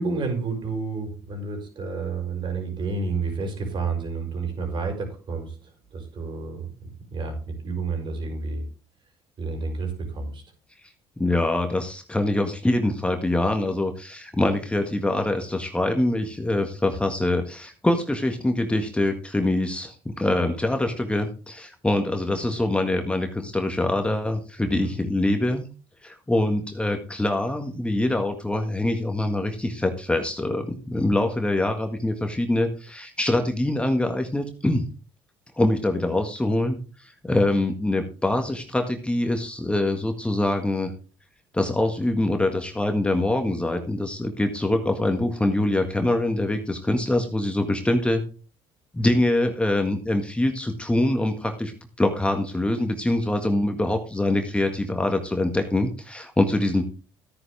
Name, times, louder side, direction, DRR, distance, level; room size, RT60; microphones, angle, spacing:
voice 1, 0.0-8.6 9.4-10.4 24.6-24.9, right 4 dB, 50° right, 3 dB, 6.0 m, -30 dB
voice 2, 11.2-25.7 26.0-34.8 35.6-40.9 41.5-48.2 48.9-51.7 52.0-56.8, left 1 dB, 10° left, 5 dB, 1.7 m, -24 dB
13.5 x 9.4 x 3.5 m, 0.35 s
supercardioid pair, 75°, 11 cm